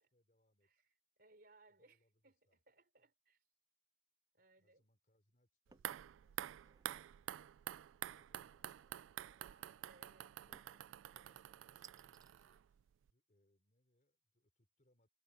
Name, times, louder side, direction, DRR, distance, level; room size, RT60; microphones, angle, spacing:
voice 1, 0.0-0.7 1.7-2.6 4.6-7.6 7.9-10.6 11.1-15.1, left 1 dB, 45° left, 3.6 m, -80 dB
voice 2, 0.6-3.4 4.3-4.8 9.1-11.3, right 2 dB, 55° right, 3.8 m, -69 dB
sound 1, 5.7-6.0 6.5-6.9 8.7-9.2 10.5-10.9 11.8-12.3, right 6 dB, 20° right, 0.4 m, -64 dB
sound 2, 5.7-12.8 13.1-13.2, right 11 dB, 90° right, 0.3 m, -49 dB
head